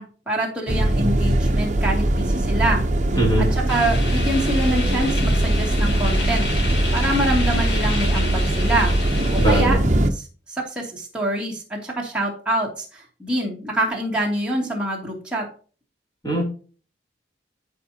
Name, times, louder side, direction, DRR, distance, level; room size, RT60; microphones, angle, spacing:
voice 1, 0.0-2.9 3.1-9.0 9.3-9.8 10.1-15.5, right 1 dB, 5° right, -4 dB, 2.5 m, -26 dB
sound 1, 0.7-10.1, right 1 dB, 40° right, 0.8 m, -21 dB
voice 2, 3.1-3.5 9.4-9.8 16.2-16.4, right 1 dB, 20° left, -2 dB, 2.9 m, -20 dB
sound 2, 3.7-9.6, left 2 dB, 75° left, 2.6 m, -31 dB
13.5 x 5.0 x 2.9 m, 0.38 s
head